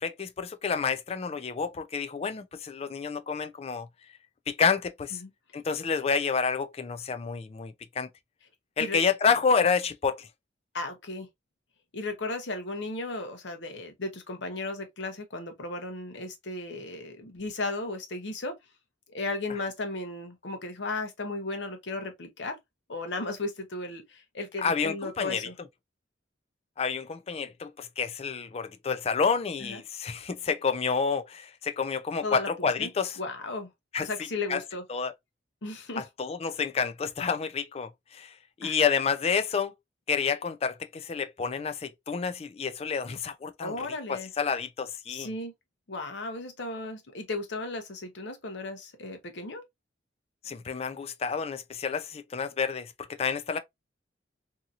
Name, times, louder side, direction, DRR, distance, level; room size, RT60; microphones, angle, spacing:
voice 1, 0.0-3.9 4.5-5.2 5.5-8.1 8.8-10.3 24.6-25.5 26.8-33.2 33.9-34.1 34.5-34.6 34.9-35.1 36.0-38.3 38.6-39.7 40.1-45.3 50.4-53.6, left 5 dB, 35° left, 0.4 m, -29 dB
voice 2, 10.7-11.3 11.9-18.6 19.1-22.6 22.9-25.5 29.6-29.8 32.2-32.9 33.2-33.7 34.0-34.8 35.6-36.0 38.6-38.8 43.6-44.3 45.1-45.5 45.9-49.6, left 2 dB, 75° left, 0.8 m, -35 dB
2.8 x 2.7 x 2.4 m
head